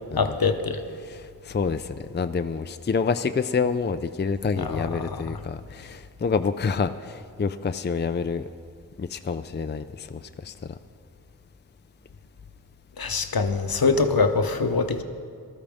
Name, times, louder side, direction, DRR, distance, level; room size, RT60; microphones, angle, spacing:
voice 1, 0.2-0.8 4.6-5.4 13.0-15.0, left 4 dB, 70° left, 8 dB, 0.8 m, -24 dB
voice 2, 1.1-8.5 9.0-10.5, left 5 dB, 30° left, 10 dB, 0.4 m, -28 dB
19.5 x 13.5 x 3.6 m, 2.2 s
wide cardioid pair, 45°, 37 cm